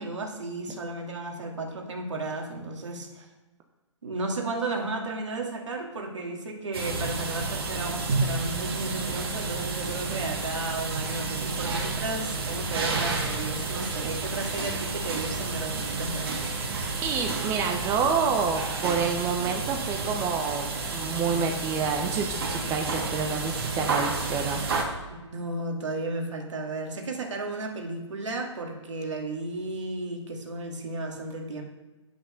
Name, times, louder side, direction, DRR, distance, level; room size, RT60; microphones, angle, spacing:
voice 1, 0.0-3.2 4.0-16.4 25.1-31.6, right 2 dB, 70° right, 2 dB, 2.5 m, -34 dB
sound 1, 6.7-24.8, right 3 dB, 50° right, 2.5 m, -31 dB
voice 2, 17.0-24.6, right 6 dB, 20° right, 4 dB, 0.8 m, -28 dB
8.7 x 6.0 x 6.6 m, 1.1 s
figure-of-eight pair, 135°, 16 cm